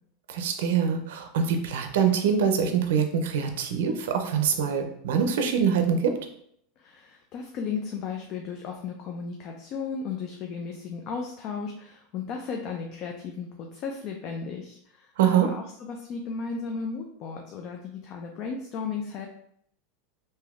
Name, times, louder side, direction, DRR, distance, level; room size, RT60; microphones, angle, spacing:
voice 1, 0.3-6.2 15.2-15.5, right 7 dB, 80° right, 6 dB, 0.4 m, -24 dB
voice 2, 6.8-19.3, left 5 dB, 40° left, 2 dB, 0.3 m, -35 dB
3.4 x 2.6 x 2.4 m, 0.69 s
supercardioid pair, 145°, 0 cm